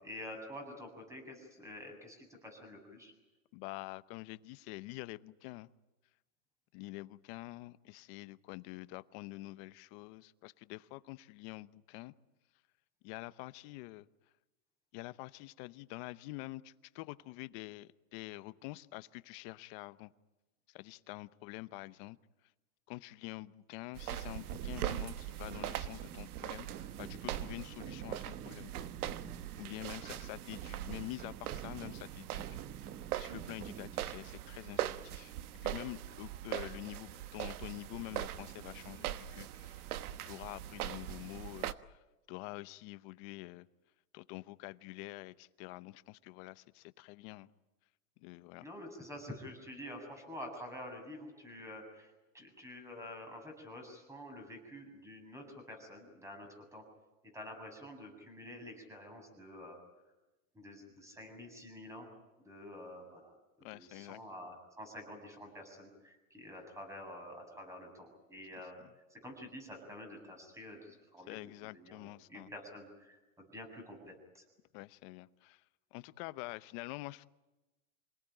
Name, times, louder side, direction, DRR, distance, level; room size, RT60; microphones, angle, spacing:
voice 1, 0.0-3.1 48.6-56.8 57.3-59.8 60.5-62.1 62.4-63.4 63.7-68.8 69.1-74.4, left 1 dB, 5° right, 4 dB, 7.5 m, -48 dB
voice 2, 3.5-5.7 6.7-12.1 13.0-14.1 14.9-20.1 20.7-22.2 22.9-28.9 29.6-32.4 33.2-35.3 35.6-39.9 40.3-42.0 42.3-43.7 44.1-47.5 48.2-48.7 63.6-64.2 68.8-68.9 71.3-72.5 74.7-75.6 75.9-77.3, left 20 dB, 40° left, 15 dB, 0.9 m, -47 dB
sound 1, 23.9-41.7, right 12 dB, 80° right, 1.3 m, -41 dB
sound 2, 24.4-35.8, right 9 dB, 20° right, 0.8 m, -50 dB
27.5 x 18.5 x 9.1 m, 1.1 s
supercardioid pair, 140°, 44 cm